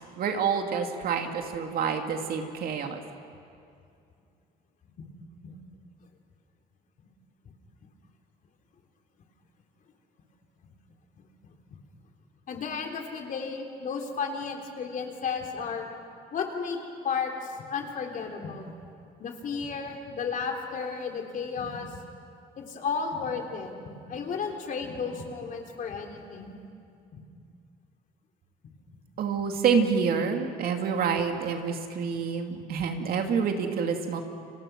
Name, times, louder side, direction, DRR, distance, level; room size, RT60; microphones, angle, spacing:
voice 1, 0.2-3.0 29.2-34.2, right 6 dB, 60° right, 4 dB, 2.5 m, -27 dB
voice 2, 12.5-15.9 16.3-16.8 17.0-18.7 19.2-21.9 22.6-26.6 27.1-27.2, left 5 dB, 50° left, 2 dB, 3.5 m, -33 dB
30.0 x 25.0 x 6.2 m, 2.5 s
cardioid pair, 110°, 17 cm